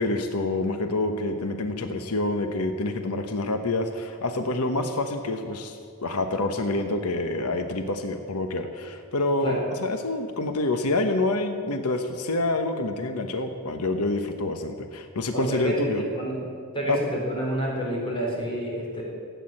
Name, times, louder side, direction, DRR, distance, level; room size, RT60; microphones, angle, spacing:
voice 1, 0.0-16.0 16.9-17.0, left 2 dB, 90° left, 7 dB, 1.0 m, -27 dB
voice 2, 15.3-16.4 16.7-19.0, equal, 25° left, -3 dB, 4.2 m, -28 dB
16.5 x 9.2 x 7.7 m, 2.3 s
head